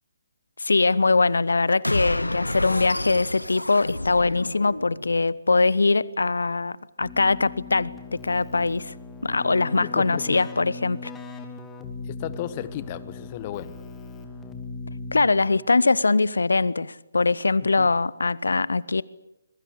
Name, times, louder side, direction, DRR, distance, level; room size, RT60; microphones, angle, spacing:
voice 1, 0.6-7.9 8.2-8.9 9.2-11.1 15.1-19.0, left 3 dB, 65° left, 0.9 m, -22 dB
sound 1, 1.8-5.2, left 1 dB, 85° left, 1.8 m, -29 dB
Keyboard (musical), 7.0-15.7, left 3 dB, 10° left, 2.4 m, -39 dB
voice 2, 9.8-10.4 12.0-13.8 17.8-17.9, left 12 dB, 30° left, 1.3 m, -34 dB
25.0 x 22.5 x 8.3 m
figure-of-eight pair, 140°, 0 cm